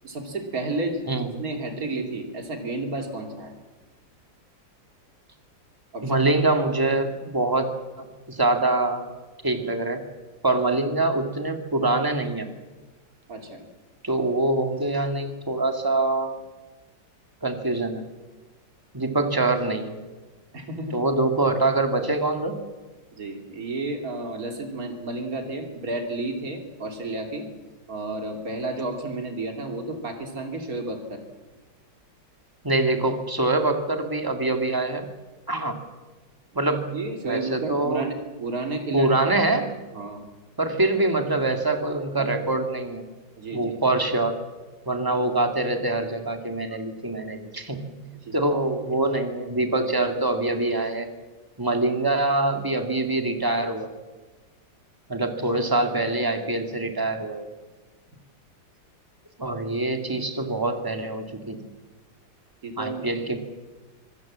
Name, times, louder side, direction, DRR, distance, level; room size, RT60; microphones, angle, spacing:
voice 1, 0.0-1.0 1.4-3.5 5.9-6.2 13.3-13.7 20.5-21.0 23.1-27.5 27.9-31.2 36.6-38.1 38.4-39.3 39.9-40.2 42.2-42.5 43.4-43.8 48.2-48.3 56.8-56.9 62.6-63.1, right 2 dB, 50° right, 4 dB, 3.3 m, -32 dB
voice 2, 6.0-7.7 8.0-9.1 9.4-10.0 10.4-12.5 14.0-16.3 17.4-18.1 18.9-20.0 20.9-22.6 32.6-35.1 35.5-35.8 36.6-37.0 37.2-38.1 38.9-39.7 40.6-43.0 43.5-44.4 44.9-48.0 48.3-51.1 51.6-53.9 55.1-57.5 59.4-61.6 62.8-63.4, right 2 dB, 10° right, 6 dB, 2.0 m, -24 dB
25.5 x 18.5 x 7.4 m, 1.3 s
omnidirectional pair, 2.0 m